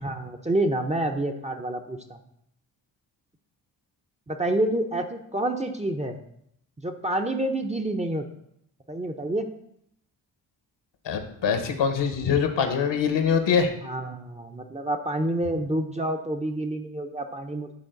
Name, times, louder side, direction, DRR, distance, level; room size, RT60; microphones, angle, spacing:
voice 1, 0.0-2.0 4.3-6.2 6.8-8.3 8.9-9.4 13.8-17.8, right 1 dB, 15° right, 3 dB, 0.8 m, -28 dB
voice 2, 11.0-13.7, left 6 dB, 60° left, 7 dB, 1.2 m, -23 dB
10.0 x 3.8 x 3.9 m, 0.74 s
hypercardioid pair, 40°, 48 cm